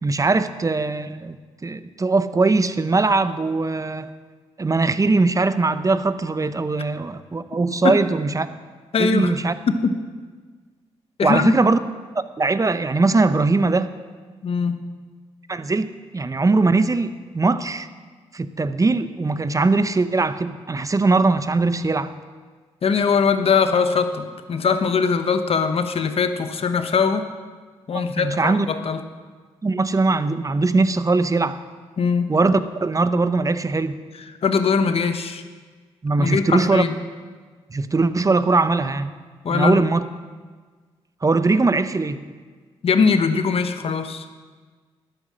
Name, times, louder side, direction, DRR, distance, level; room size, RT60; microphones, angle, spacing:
voice 1, 0.0-1.4 1.6-4.1 4.6-8.5 9.0-9.5 11.2-11.8 12.1-13.9 15.5-17.9 18.3-22.1 27.9-28.7 29.6-31.6 32.3-34.0 36.0-36.8 37.7-39.1 39.5-40.0 41.2-42.2, right 3 dB, 30° right, 12 dB, 0.8 m, -20 dB
voice 2, 8.9-9.3 9.7-9.9 11.2-11.5 14.4-14.8 22.8-27.3 27.9-29.0 32.0-32.3 34.4-35.4 36.2-36.9 39.4-39.8 42.8-44.2, left 5 dB, 60° left, 8 dB, 1.1 m, -21 dB
12.5 x 9.7 x 6.3 m, 1.5 s
supercardioid pair, 50°, 11 cm